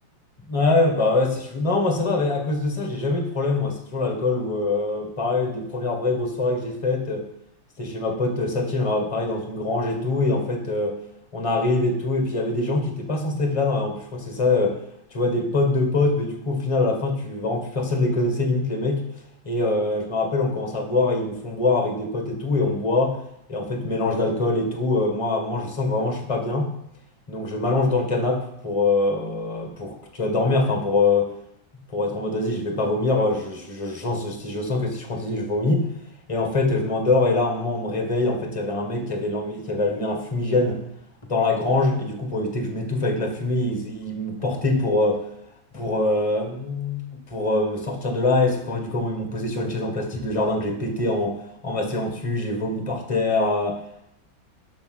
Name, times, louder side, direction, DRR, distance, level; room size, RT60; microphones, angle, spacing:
voice 1, 0.5-7.3 7.8-11.0 11.3-14.8 15.1-19.0 19.5-23.2 23.5-26.7 27.3-31.3 31.9-35.9 36.3-40.8 41.3-45.2 45.7-53.8, left 2 dB, 20° left, 3 dB, 1.7 m, -24 dB
10.5 x 5.8 x 6.2 m, 0.78 s
omnidirectional pair, 2.0 m